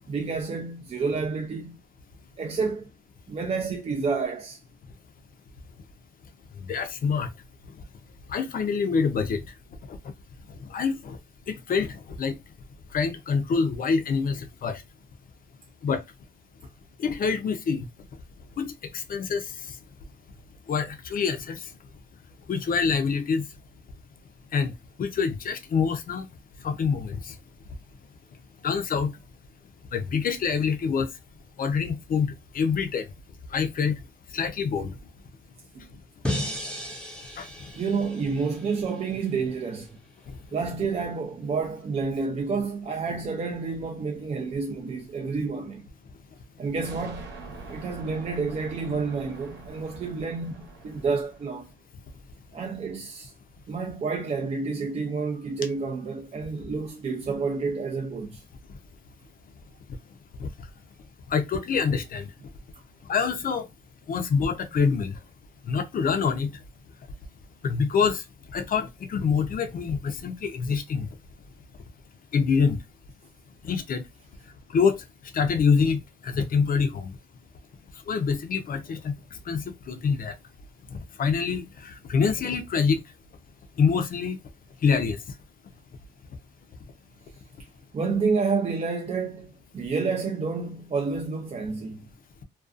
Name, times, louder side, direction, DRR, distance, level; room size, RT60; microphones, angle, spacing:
voice 1, 0.1-1.8 2.4-2.9 3.3-4.6 35.7-35.9 37.8-40.0 40.5-45.9 46.6-47.3 47.7-51.7 52.5-53.3 53.7-58.4 70.9-71.1 87.9-92.1, right 4 dB, 30° right, 0.4 m, -29 dB
voice 2, 6.7-7.3 8.3-9.4 10.7-11.2 11.5-12.3 12.9-14.8 15.8-16.0 17.0-17.8 18.6-19.4 20.7-21.6 22.5-23.4 24.5-24.7 25.0-26.3 26.6-27.2 28.6-29.1 29.9-31.1 31.6-33.0 33.5-33.9 34.3-34.9 60.4-60.5 61.3-62.3 63.1-63.7 64.1-65.1 65.7-66.5 67.6-68.2 68.5-71.1 72.3-72.8 73.7-74.0 74.7-75.0 75.3-76.0 76.2-77.1 78.1-79.1 79.5-79.6 79.9-80.3 81.2-81.6 82.1-83.0 83.8-84.4 84.8-85.2, left 5 dB, 45° left, 0.5 m, -25 dB
sound 1, 36.2-39.4, left 1 dB, 5° left, 0.7 m, -34 dB
sound 2, 46.8-51.7, right 3 dB, 65° right, 1.0 m, -44 dB
2.5 x 2.3 x 2.4 m
cardioid pair, 90°, 20 cm